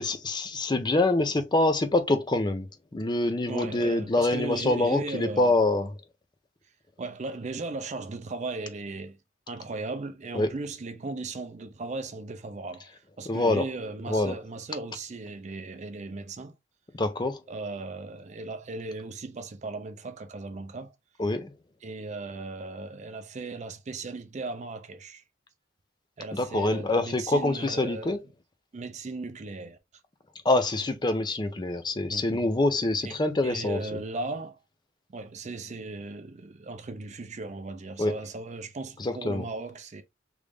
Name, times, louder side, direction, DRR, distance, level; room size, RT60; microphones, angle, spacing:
voice 1, 0.0-2.7 2.9-5.9 10.3-10.5 13.3-13.7 14.1-14.4 17.0-17.4 21.2-21.5 26.3-28.2 30.4-33.8 38.0-38.1 39.0-39.4, left 2 dB, 25° left, 0.5 m, -25 dB
voice 2, 3.5-5.5 7.0-9.2 9.5-16.5 17.5-20.9 21.8-25.2 26.2-28.2 28.7-29.8 32.1-32.5 33.0-33.2 33.4-34.6 35.1-40.0, right 3 dB, 40° right, 0.5 m, -37 dB
3.2 x 2.6 x 3.4 m
head